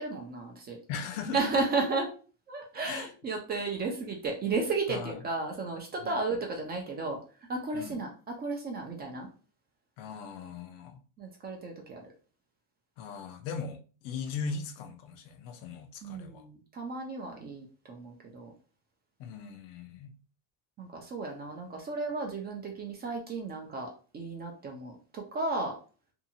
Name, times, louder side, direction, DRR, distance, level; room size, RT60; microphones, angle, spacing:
voice 1, 0.0-0.8 1.3-2.1 2.5-7.2 7.5-9.3 11.2-12.1 16.0-18.5 20.8-25.8, right 3 dB, 20° right, 0.5 m, -34 dB
voice 2, 0.9-1.5 2.8-3.1 4.9-5.2 6.0-6.2 7.7-8.0 10.0-11.0 13.0-16.5 19.2-20.2, left 5 dB, 60° left, 0.6 m, -39 dB
2.7 x 2.3 x 2.7 m
supercardioid pair, 135°, 45 cm